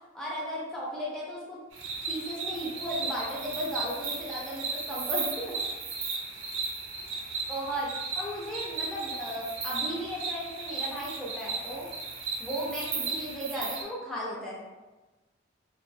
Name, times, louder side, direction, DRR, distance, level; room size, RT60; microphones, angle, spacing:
voice 1, 0.1-1.6 2.1-5.6 7.5-7.9 8.1-11.9 12.4-14.7, equal, 5° left, -7 dB, 0.5 m, -35 dB
sound 1, 1.7-13.8, right 4 dB, 80° right, 0.5 m, -35 dB
2.4 x 2.0 x 2.6 m, 1.2 s
head